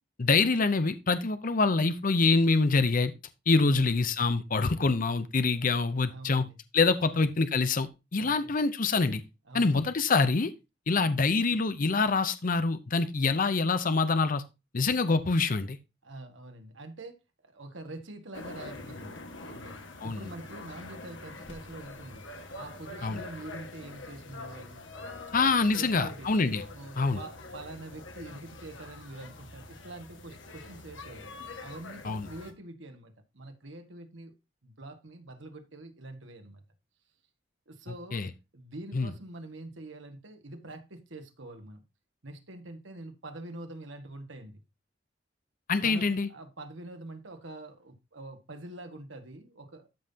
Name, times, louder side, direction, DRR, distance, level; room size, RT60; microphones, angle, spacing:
voice 1, 0.2-3.1 3.5-6.4 6.7-9.2 9.5-10.5 10.9-14.4 14.7-15.8 20.0-20.2 23.0-23.2 25.3-26.6 27.0-27.2 32.0-32.3 38.1-38.3 38.9-39.1 45.7-46.3, left 4 dB, 45° left, 0.7 m, -25 dB
voice 2, 3.6-3.9 6.1-6.6 7.0-7.2 8.2-8.5 9.5-9.9 16.0-17.1 17.4-19.8 20.0-22.2 22.5-24.8 25.8-26.3 26.7-31.3 31.6-34.3 34.6-36.6 37.7-38.2 38.5-41.8 42.2-44.6 45.8-49.9, right 2 dB, 90° right, 1.7 m, -45 dB
sound 1, 18.3-32.5, left 2 dB, 80° left, 1.6 m, -45 dB
13.0 x 5.6 x 2.8 m
head